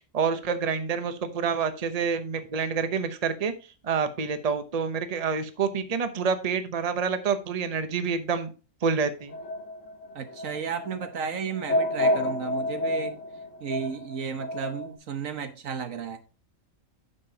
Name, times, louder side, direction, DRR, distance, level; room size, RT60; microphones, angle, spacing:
voice 1, 0.1-3.5 3.8-8.5 8.8-9.4, right 6 dB, 35° right, 0.8 m, -27 dB
sound 1, 9.3-14.9, left 1 dB, 70° left, 1.4 m, -29 dB
voice 2, 10.1-13.2 13.6-16.2, right 6 dB, 85° right, 1.5 m, -33 dB
9.8 x 6.8 x 2.8 m
omnidirectional pair, 1.3 m